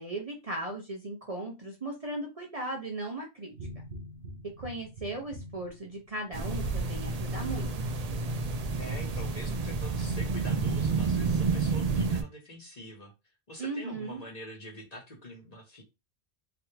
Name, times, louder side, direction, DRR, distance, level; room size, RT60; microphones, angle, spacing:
voice 1, 0.0-3.5 4.6-7.7 13.6-14.2, right 2 dB, 35° right, 0.8 m, -37 dB
sound 1, 3.5-7.0 7.4-7.6, right 2 dB, 85° right, 1.1 m, -42 dB
sound 2, 6.3-12.2, right 4 dB, 55° right, 0.4 m, -30 dB
voice 2, 8.7-13.1 13.5-15.8, equal, 35° left, 1.2 m, -45 dB
3.2 x 2.9 x 2.8 m
omnidirectional pair, 1.1 m